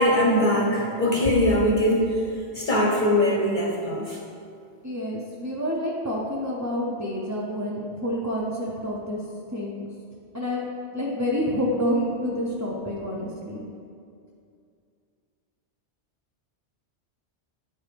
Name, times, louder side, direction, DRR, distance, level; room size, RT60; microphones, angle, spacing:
voice 1, 0.0-2.2 2.5-4.2, left 1 dB, 50° left, -2 dB, 0.8 m, -21 dB
voice 2, 4.8-9.2 9.5-9.9 10.3-10.7 10.9-13.6, equal, 20° right, -5 dB, 0.5 m, -28 dB
9.2 x 4.7 x 3.4 m, 2.4 s
omnidirectional pair, 1.2 m